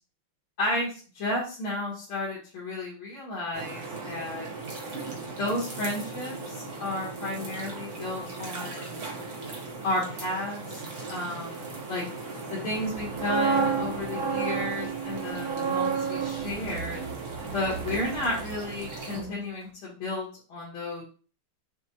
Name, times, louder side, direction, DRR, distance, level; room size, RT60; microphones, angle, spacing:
voice 1, 0.6-4.5 5.4-9.1 9.8-10.8 11.1-12.0 12.5-17.0 17.5-21.0, left 1 dB, 75° left, -7 dB, 2.3 m, -32 dB
sound 1, 3.5-19.2, right 3 dB, 45° right, 1.0 m, -38 dB
sound 2, 12.9-18.9 19.1-19.4, right 5 dB, 75° right, 0.9 m, -31 dB
6.1 x 2.4 x 2.8 m, 0.38 s
omnidirectional pair, 2.4 m